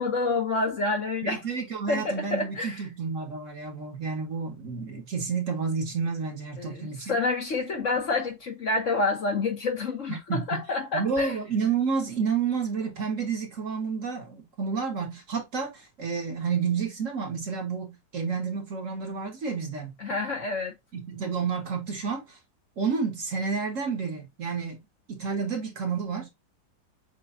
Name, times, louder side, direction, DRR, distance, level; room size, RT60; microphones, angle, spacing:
voice 1, 0.0-1.4 1.9-2.8 6.6-11.3 20.0-20.7, left 3 dB, 50° left, 1.2 m, -28 dB
voice 2, 1.2-7.1 10.1-10.6 10.9-19.9 20.9-22.4 22.8-24.8 25.1-26.3, right 5 dB, 45° right, 1.5 m, -30 dB
7.0 x 3.0 x 2.5 m
omnidirectional pair, 2.0 m